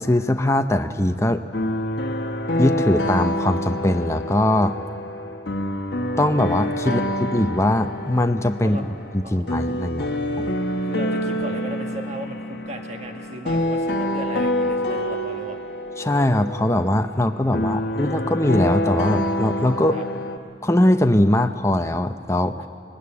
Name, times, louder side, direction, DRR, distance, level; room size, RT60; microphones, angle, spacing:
voice 1, 0.0-1.4 2.6-4.7 6.2-7.0 7.3-8.8 9.1-10.1 10.4-10.5 16.0-20.0 20.6-22.5, left 1 dB, 15° left, 7 dB, 0.7 m, -21 dB
sound 1, 1.5-20.4, left 1 dB, 65° left, 1.3 m, -27 dB
voice 2, 9.2-10.1 10.7-15.6 17.1-18.0 19.9-20.0, right 1 dB, 40° right, 3 dB, 1.7 m, -36 dB
20.5 x 16.5 x 9.9 m, 2.3 s
head